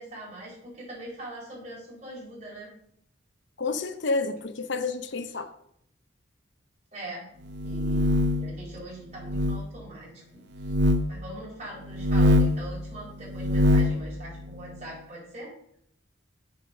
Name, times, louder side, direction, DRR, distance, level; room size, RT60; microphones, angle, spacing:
voice 1, 0.0-2.7 6.9-7.3 7.6-10.7 11.1-15.5, right 1 dB, 35° right, -4 dB, 4.8 m, -42 dB
voice 2, 3.6-5.5, left 3 dB, 60° left, 10 dB, 0.7 m, -29 dB
sound 1, 7.5-8.5 9.2-9.6 10.6-11.0 11.9-12.6 13.3-14.0, left 1 dB, 55° right, 0.8 m, -22 dB
7.8 x 6.8 x 6.1 m, 0.72 s
head